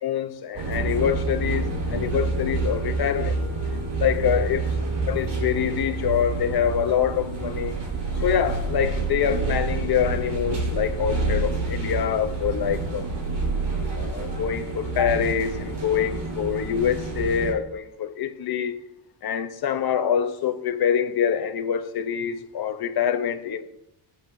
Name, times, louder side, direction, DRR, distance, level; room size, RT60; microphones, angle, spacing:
voice 1, 0.0-3.4 4.0-4.7 5.1-7.8 8.1-13.1 13.9-18.8 19.2-23.6, left 8 dB, 50° left, 1.0 m, -25 dB
sound 1, 0.5-17.5, right 3 dB, 55° right, 4.1 m, -28 dB
18.5 x 9.2 x 2.7 m
cardioid pair, 140°, 48 cm